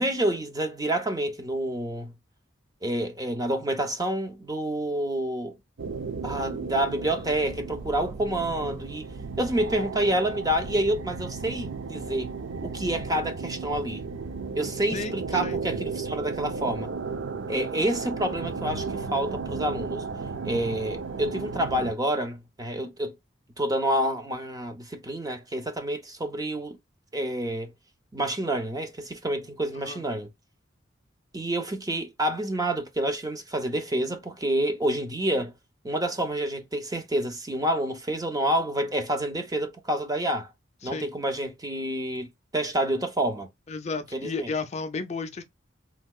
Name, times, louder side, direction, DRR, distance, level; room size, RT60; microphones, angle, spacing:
voice 1, 0.0-2.1 2.8-5.6 6.2-9.1 9.4-12.3 12.6-14.0 14.5-16.9 17.5-20.0 20.4-23.1 23.6-26.8 27.1-27.7 28.1-30.3 31.3-35.5 35.8-40.5 40.8-43.5 44.1-44.5, right 1 dB, 20° right, 0.7 m, -28 dB
sound 1, 5.8-21.9, right 4 dB, 75° right, 0.5 m, -34 dB
voice 2, 14.9-15.6 29.7-30.0 40.8-41.1 43.7-45.4, left 4 dB, 35° left, 0.4 m, -33 dB
3.5 x 2.8 x 2.3 m
head